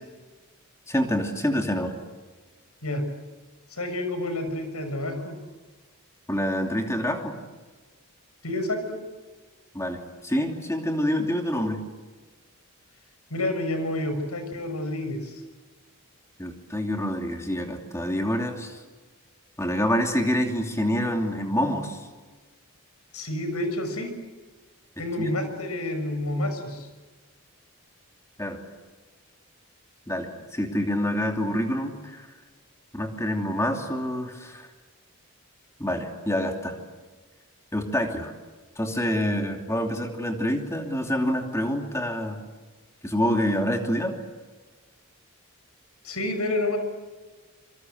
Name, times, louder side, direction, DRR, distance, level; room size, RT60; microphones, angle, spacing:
voice 1, 0.9-1.9 6.3-7.4 9.7-11.8 16.4-18.8 19.6-22.1 25.2-25.3 28.4-28.6 30.1-32.3 32.9-34.7 35.8-36.8 37.7-38.3 38.8-42.4 43.0-44.1, equal, 15° left, 3 dB, 2.8 m, -27 dB
voice 2, 3.7-5.4 8.4-9.0 13.3-15.4 23.1-24.1 25.0-26.9 46.0-46.8, left 1 dB, 85° left, 7 dB, 6.3 m, -29 dB
27.0 x 24.5 x 7.9 m, 1.3 s
head